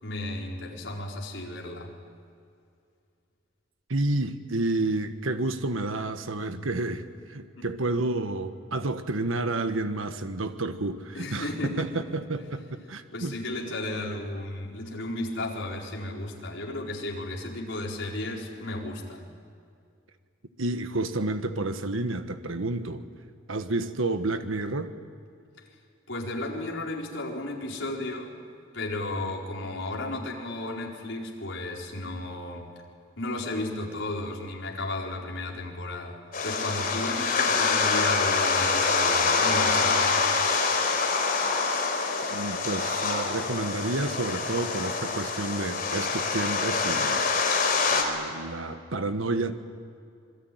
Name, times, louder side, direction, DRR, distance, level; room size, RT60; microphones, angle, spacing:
voice 1, 0.0-1.9 7.6-7.7 11.1-12.0 13.1-19.3 26.1-28.3 28.7-32.7 33.2-40.2, left 2 dB, 70° left, -2 dB, 4.5 m, -34 dB
voice 2, 3.9-7.0 7.3-13.3 20.6-23.0 23.5-24.9 42.3-47.2 47.9-49.5, right 2 dB, 85° right, 9 dB, 1.4 m, -30 dB
sound 1, 36.3-48.0, left 4 dB, 45° left, 3.9 m, -25 dB
26.5 x 22.0 x 9.4 m, 2.3 s
head